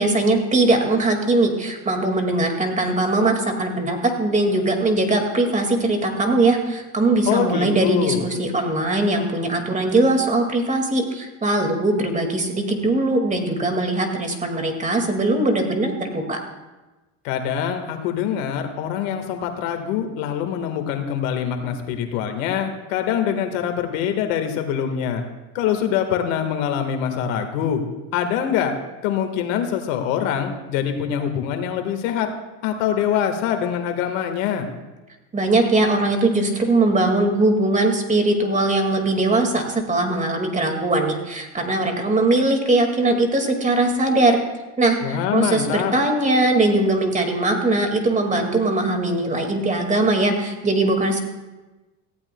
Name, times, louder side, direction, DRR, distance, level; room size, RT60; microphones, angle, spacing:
voice 1, 0.0-16.4 35.3-44.4 44.8-51.2, right 2 dB, 20° right, 4 dB, 2.0 m, -20 dB
voice 2, 7.3-8.3 17.2-25.2 25.5-27.8 28.1-28.7 29.0-32.3 32.6-34.7 45.0-45.9, left 9 dB, 80° left, 6 dB, 1.7 m, -24 dB
18.0 x 15.0 x 2.2 m, 1.1 s
supercardioid pair, 105°, 39 cm